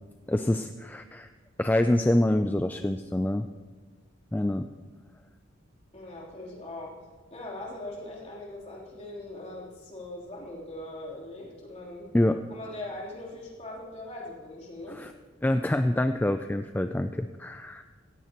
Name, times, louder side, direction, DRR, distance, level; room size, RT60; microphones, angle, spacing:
voice 1, 0.3-1.3 1.6-3.5 4.3-4.7 12.1-12.4 14.9-15.1 15.4-17.8, left 1 dB, 10° left, 8 dB, 0.3 m, -26 dB
voice 2, 5.9-7.0 7.3-12.1 12.5-15.0, left 1 dB, 35° left, -4 dB, 3.5 m, -40 dB
17.0 x 15.5 x 3.0 m, 1.4 s
head